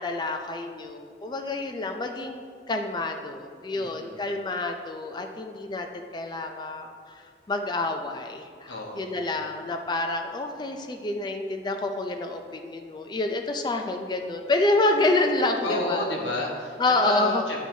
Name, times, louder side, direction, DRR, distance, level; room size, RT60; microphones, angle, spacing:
voice 1, 0.0-2.4 2.7-16.0 16.8-17.4, left 2 dB, 25° left, 5 dB, 0.3 m, -28 dB
voice 2, 3.7-4.2 8.7-9.4 15.6-17.7, left 2 dB, 80° left, -2 dB, 1.1 m, -31 dB
8.1 x 4.4 x 2.7 m, 2.1 s
head